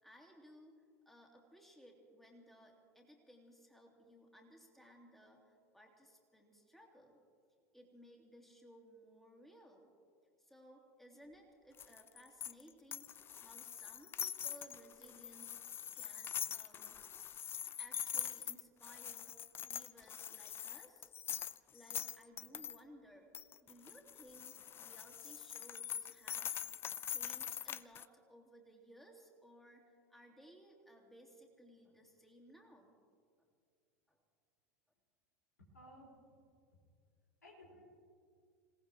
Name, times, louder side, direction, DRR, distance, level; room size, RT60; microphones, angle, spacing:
voice 1, 0.0-7.2 7.7-9.9 10.4-15.6 15.9-17.0 17.6-21.1 21.7-23.3 23.6-26.8 27.1-33.0 34.1-34.2, equal, 5° left, 0 dB, 2.8 m, -60 dB
sound 1, 11.8-22.8 23.3-28.0, left 9 dB, 25° left, 0.4 m, -44 dB
voice 2, 35.7-36.4 37.4-37.9, equal, 80° left, -3 dB, 4.4 m, -58 dB
27.0 x 18.0 x 3.0 m, 2.2 s
figure-of-eight pair, 80°, 9 cm